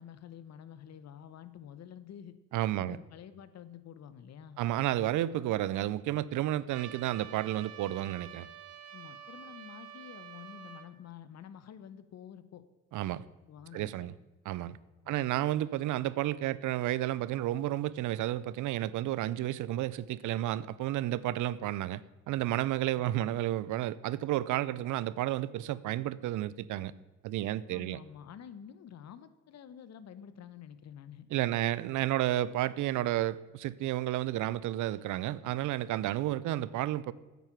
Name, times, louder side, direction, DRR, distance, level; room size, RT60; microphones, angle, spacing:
voice 1, 0.0-2.3 2.8-4.6 8.9-12.6 13.5-14.1 15.0-15.4 23.0-23.3 27.7-31.3, left 9 dB, 60° left, 13 dB, 0.9 m, -49 dB
voice 2, 2.5-3.0 4.6-8.5 12.9-13.2 13.7-14.1 14.5-14.8 15.1-26.9 27.2-28.0 31.3-37.1, right 14 dB, 75° right, 19 dB, 0.5 m, -31 dB
Trumpet, 6.7-10.9, right 9 dB, 55° right, 1.1 m, -48 dB
9.1 x 8.2 x 5.9 m, 1.1 s
cardioid pair, 90°, 30 cm